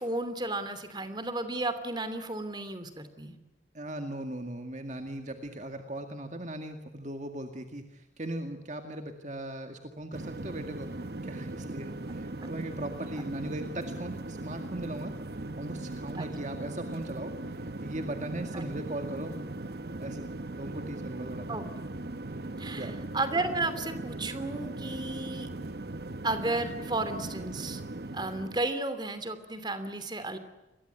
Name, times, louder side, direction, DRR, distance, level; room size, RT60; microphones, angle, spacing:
voice 1, 0.0-3.4 12.4-12.5 16.1-16.3 18.5-18.7 21.5-21.6 22.6-25.5 26.2-27.8 28.1-30.4, right 2 dB, 25° right, 11 dB, 2.9 m, -33 dB
voice 2, 3.7-19.4 20.0-20.3 20.6-21.5 22.7-23.0, right 1 dB, 40° right, 5 dB, 2.1 m, -39 dB
sound 1, 10.1-28.7, right 2 dB, 60° right, 1.0 m, -39 dB
29.0 x 22.5 x 8.2 m, 1.1 s
head